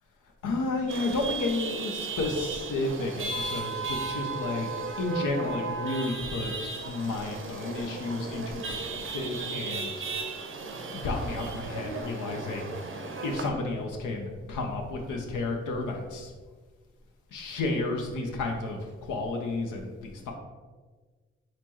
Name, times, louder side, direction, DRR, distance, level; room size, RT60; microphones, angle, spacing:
voice 1, 0.4-4.7 5.0-9.9 10.9-13.0 13.2-16.3 17.3-20.3, left 2 dB, 75° left, 2 dB, 0.7 m, -32 dB
Chatter / Vehicle horn car horn honking / Traffic noise roadway noise, 0.9-13.5, right 4 dB, 40° right, 0.7 m, -35 dB
4.2 x 3.0 x 3.0 m, 1.4 s
hypercardioid pair, 40°, 32 cm